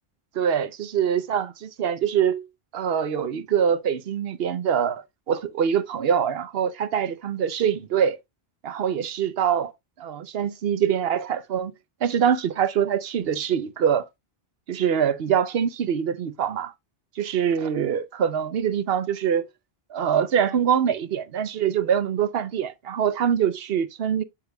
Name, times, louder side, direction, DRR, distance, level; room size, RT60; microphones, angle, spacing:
voice 1, 0.4-2.4 2.7-8.2 8.6-9.7 10.0-11.7 12.0-14.1 14.7-16.7 17.2-19.5 19.9-24.2, right 8 dB, 70° right, 0.9 m, -24 dB
8.0 x 7.4 x 2.2 m
omnidirectional pair, 1.1 m